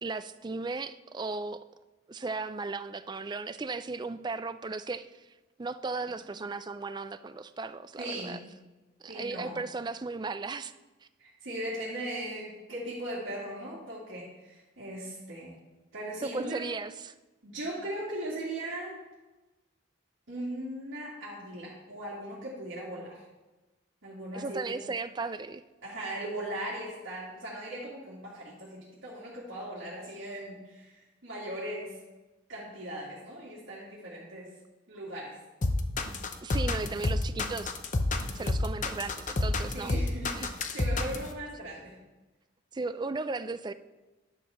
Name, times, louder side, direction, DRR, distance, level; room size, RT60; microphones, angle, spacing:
voice 1, 0.0-1.6 2.1-5.2 5.6-8.4 9.0-10.7 16.2-17.1 24.3-25.6 36.4-37.7 38.3-39.9 40.3-40.5 42.7-43.7, right 3 dB, 20° right, 12 dB, 0.3 m, -36 dB
voice 2, 8.0-8.4 9.1-9.6 11.2-15.6 15.9-16.7 17.4-18.9 20.3-23.2 24.0-24.8 25.8-31.0 31.2-31.9 32.5-34.5 34.9-35.4 39.7-42.0, right 1 dB, 75° right, -8 dB, 2.4 m, -38 dB
sound 1, 35.6-41.3, left 2 dB, 40° left, 0.7 m, -28 dB
10.5 x 4.9 x 6.4 m, 1.1 s
head